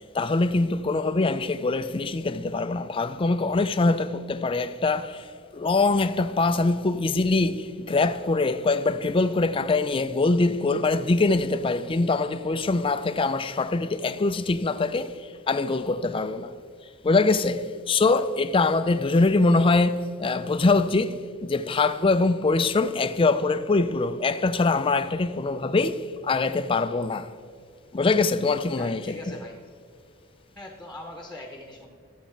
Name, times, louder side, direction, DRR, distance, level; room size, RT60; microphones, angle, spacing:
voice 1, 0.1-16.5 17.0-27.3 27.9-29.4, left 3 dB, 25° left, 0.4 m, -23 dB
voice 2, 28.8-29.6 30.5-31.9, left 2 dB, 5° left, 1.0 m, -41 dB
13.0 x 8.3 x 4.5 m
head